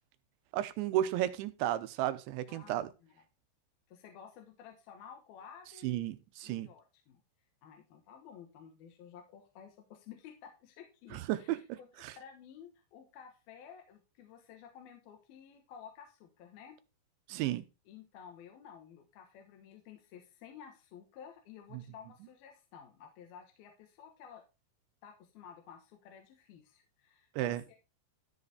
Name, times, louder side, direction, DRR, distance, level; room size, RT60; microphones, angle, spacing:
voice 1, 0.5-2.9 5.8-6.7 11.1-12.1 17.3-17.6 21.7-21.8 27.4-27.6, right 13 dB, 90° right, 3.1 m, -33 dB
voice 2, 2.5-3.1 3.9-6.1 6.4-7.2 7.6-16.8 17.9-24.4 25.0-27.8, left 8 dB, 70° left, 2.8 m, -53 dB
13.5 x 5.0 x 4.8 m
omnidirectional pair, 5.1 m